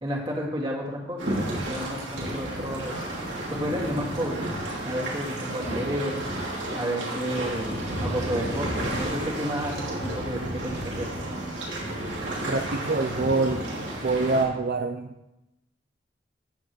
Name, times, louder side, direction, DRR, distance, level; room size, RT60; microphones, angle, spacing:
voice 1, 0.0-2.9 3.5-4.4 4.8-6.2 6.7-7.7 8.0-11.1, equal, 25° right, -3 dB, 2.0 m, -31 dB
sound 1, 1.2-14.4, right 1 dB, 80° right, 3.0 m, -32 dB
voice 2, 12.5-13.6 14.0-15.3, right 3 dB, 55° right, 5 dB, 0.5 m, -25 dB
15.0 x 7.7 x 3.1 m, 0.95 s
head